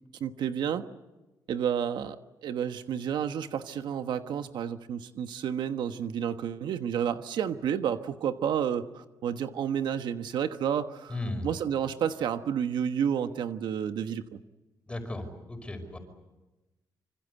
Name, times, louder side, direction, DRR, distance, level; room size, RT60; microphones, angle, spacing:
voice 1, 0.2-0.9 1.5-11.2 11.4-14.2, right 8 dB, 80° right, 9 dB, 1.3 m, -30 dB
voice 2, 11.1-11.5 14.9-16.0, left 2 dB, 15° left, 6 dB, 5.5 m, -35 dB
26.0 x 25.5 x 8.2 m, 1.1 s
cardioid pair, 130°, 8 cm